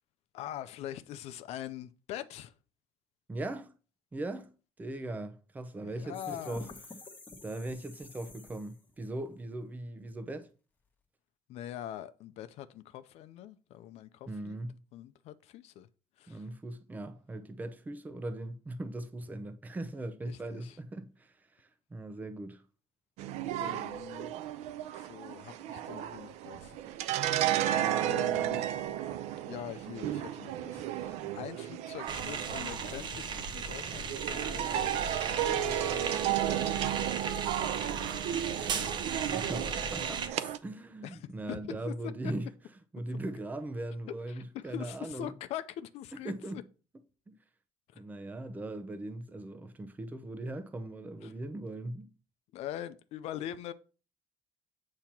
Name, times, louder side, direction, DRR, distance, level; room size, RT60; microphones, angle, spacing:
voice 1, 0.3-2.5 5.8-6.7 11.5-14.6 14.9-15.9 16.2-16.4 20.2-20.8 23.6-24.3 24.9-26.8 27.7-28.6 29.5-34.9 35.3-37.1 41.0-41.2 41.5-41.9 44.3-46.3 51.2-51.3 52.5-53.7, left 11 dB, 70° left, 0.5 m, -43 dB
voice 2, 3.3-3.7 4.1-4.5 4.8-6.7 7.4-10.5 14.3-14.8 16.3-22.6 38.5-38.7 39.2-42.5 42.9-45.4 46.2-46.6 47.3-47.4 47.9-52.1, right 1 dB, 15° right, 0.7 m, -39 dB
sound 1, 6.1-8.9, left 2 dB, 15° left, 1.4 m, -49 dB
sound 2, 23.2-40.6, right 12 dB, 80° right, 0.6 m, -33 dB
sound 3, 32.1-40.3, right 5 dB, 45° right, 0.9 m, -36 dB
8.5 x 2.9 x 5.9 m
cardioid pair, 140°, 11 cm